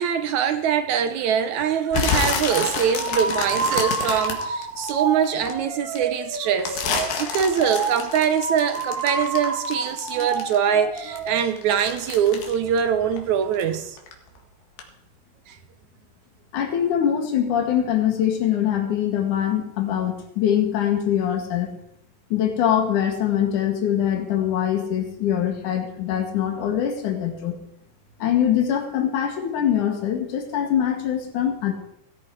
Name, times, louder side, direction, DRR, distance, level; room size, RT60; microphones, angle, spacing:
voice 1, 0.0-6.8 7.2-14.0 15.5-15.6, right 8 dB, 70° right, 2.2 m, -23 dB
sound 1, 1.9-5.5 5.9-10.7 11.0-13.7 14.0-14.4 14.8-14.9, left 5 dB, 90° left, 3.6 m, -28 dB
sound 2, 2.5-11.4, right 4 dB, 35° right, 1.6 m, -29 dB
voice 2, 16.5-21.7 22.3-27.6 28.2-31.7, left 9 dB, 65° left, 3.4 m, -23 dB
17.0 x 14.0 x 4.8 m
omnidirectional pair, 3.9 m